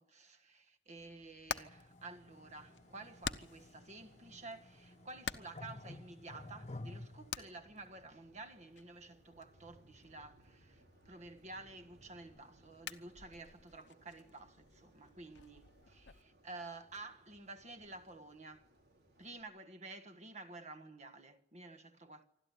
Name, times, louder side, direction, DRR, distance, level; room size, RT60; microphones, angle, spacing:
voice 1, 0.0-18.7 19.2-22.3, right 2 dB, 40° right, 1.6 m, -51 dB
Hammer, 1.0-16.2, left 7 dB, 90° left, 1.0 m, -50 dB
sound 1, 1.5-7.3, left 2 dB, 40° left, 1.1 m, -52 dB
sound 2, 2.3-19.4, right 1 dB, 65° right, 3.9 m, -67 dB
27.5 x 13.0 x 9.5 m
head